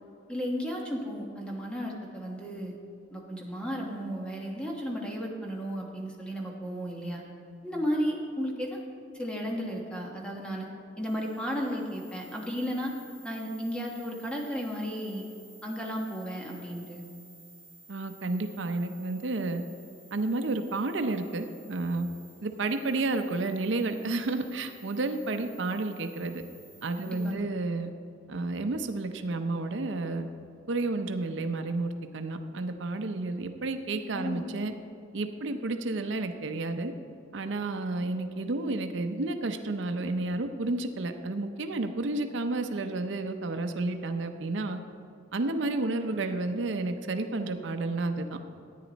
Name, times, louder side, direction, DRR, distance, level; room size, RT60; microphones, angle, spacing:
voice 1, 0.3-2.7 3.1-7.2 7.6-8.8 9.1-10.7 11.0-12.9 13.2-15.2 15.6-17.0 27.0-27.5 34.1-34.4, equal, 5° left, -1 dB, 1.3 m, -34 dB
sound 1, 11.0-27.3, right 1 dB, 90° left, 2.6 m, -55 dB
voice 2, 17.9-19.6 20.1-22.1 22.4-26.4 26.8-27.9 28.3-30.3 30.7-34.7 35.1-36.9 37.3-44.8 45.3-48.4, right 2 dB, 75° right, 7 dB, 0.6 m, -31 dB
13.5 x 9.3 x 4.0 m, 2.5 s
head